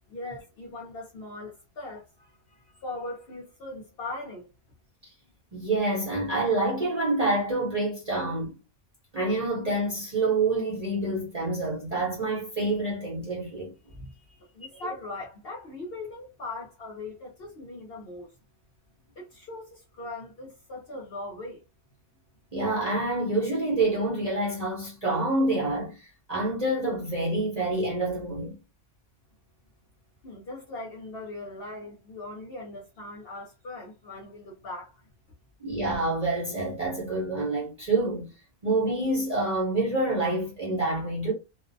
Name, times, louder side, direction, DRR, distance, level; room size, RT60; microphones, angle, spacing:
voice 1, 0.1-4.5 14.1-18.3 19.2-21.6 30.2-34.9, left 2 dB, 55° left, 0.7 m, -40 dB
voice 2, 5.5-8.5 9.1-13.7 14.7-14.8 22.5-28.6 35.6-38.3 38.6-41.3, right 2 dB, 35° right, 0.7 m, -27 dB
2.5 x 2.1 x 2.5 m
omnidirectional pair, 1.5 m